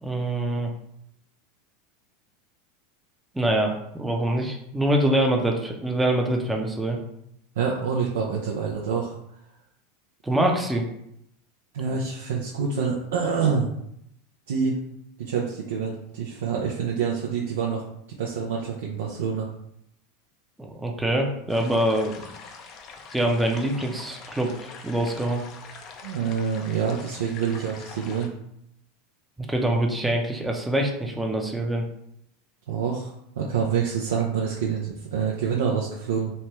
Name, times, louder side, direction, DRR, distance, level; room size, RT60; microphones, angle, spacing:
voice 1, 0.0-0.7 3.3-7.0 10.2-10.8 20.6-22.3 23.1-24.5 24.8-25.4 29.5-31.8, right 1 dB, 5° right, 1 dB, 0.6 m, -24 dB
voice 2, 7.6-9.1 11.7-13.7 14.5-14.8 15.2-17.8 18.2-19.5 26.0-28.3 32.7-36.3, right 6 dB, 80° right, -3 dB, 0.4 m, -26 dB
sound 1, 21.5-28.3, left 5 dB, 45° left, 0.5 m, -44 dB
3.2 x 2.2 x 2.9 m, 0.76 s
hypercardioid pair, 100°, 0 cm